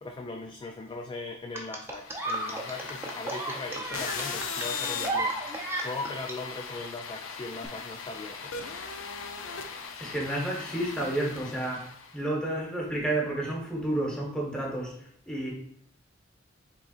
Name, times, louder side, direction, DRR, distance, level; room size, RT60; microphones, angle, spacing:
voice 1, 0.0-5.3 5.8-8.5, left 3 dB, 25° left, 4 dB, 0.3 m, -39 dB
sound 1, 1.5-6.3 7.5-7.7, right 2 dB, 10° right, 0.7 m, -33 dB
sound 2, 2.0-12.2, left 5 dB, 80° left, 0.6 m, -38 dB
voice 2, 10.0-14.9 15.3-15.5, right 1 dB, 5° left, -3 dB, 1.2 m, -31 dB
5.7 x 3.7 x 2.4 m, 0.72 s
head